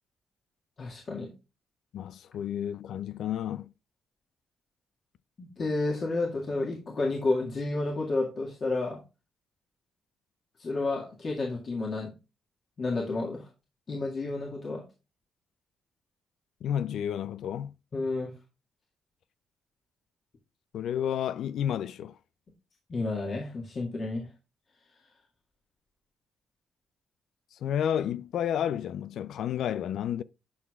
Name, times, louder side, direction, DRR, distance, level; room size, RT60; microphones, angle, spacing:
voice 1, 0.8-1.3 5.4-9.0 10.6-12.1 12.8-13.5 13.9-14.8 17.9-18.3 22.9-24.3, left 3 dB, 50° left, 1.9 m, -31 dB
voice 2, 1.9-3.7 16.6-17.8 20.7-22.2 27.5-30.2, left 9 dB, 75° left, 0.4 m, -31 dB
11.0 x 4.8 x 2.4 m
supercardioid pair, 55°, 0 cm